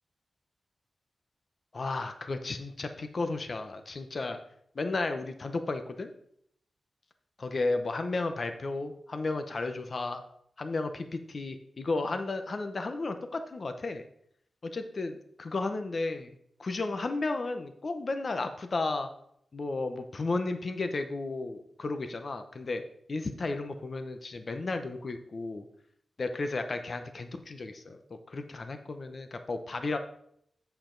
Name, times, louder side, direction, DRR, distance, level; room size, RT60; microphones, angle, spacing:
voice 1, 1.7-4.4 4.7-6.1 7.4-10.2 10.6-14.0 14.6-16.3 16.6-19.1 19.5-22.8 23.1-25.7 26.2-28.0 28.3-30.0, left 3 dB, 45° left, 8 dB, 0.8 m, -33 dB
7.9 x 6.8 x 3.9 m, 0.70 s
wide cardioid pair, 115°, 0 cm